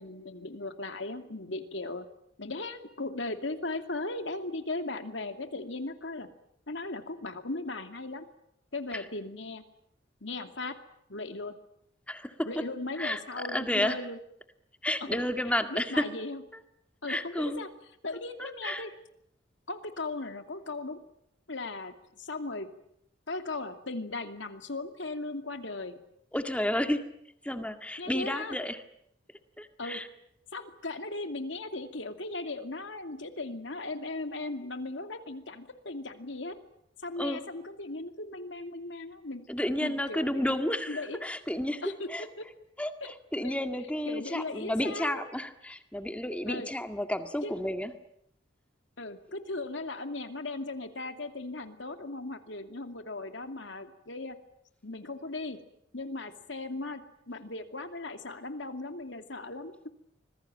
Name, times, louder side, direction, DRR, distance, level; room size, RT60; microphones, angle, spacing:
voice 1, 0.0-2.1 2.4-6.3 6.7-8.3 8.7-9.6 10.2-10.8 11.1-11.5 12.4-14.2 15.1-15.2 15.7-16.4 17.0-17.7 18.0-18.9 19.7-21.0 21.5-22.7 23.3-26.0 28.0-28.6 29.8-30.0 30.5-36.6 37.0-39.5 39.8-40.5 40.9-41.2 41.8-42.4 43.0-43.1 43.4-43.6 44.1-45.2 46.5-46.7 47.4-47.5 49.0-54.4 54.8-55.6 55.9-59.7, left 2 dB, 70° left, 7 dB, 2.6 m, -37 dB
voice 2, 13.5-14.0 14.8-16.1 17.1-17.6 18.4-18.8 26.3-27.0 27.4-28.8 29.6-30.1 37.2-37.4 39.5-41.8 42.1-42.3 42.8-47.9, left 1 dB, 5° left, 7 dB, 1.9 m, -31 dB
26.0 x 21.5 x 8.9 m, 0.76 s
head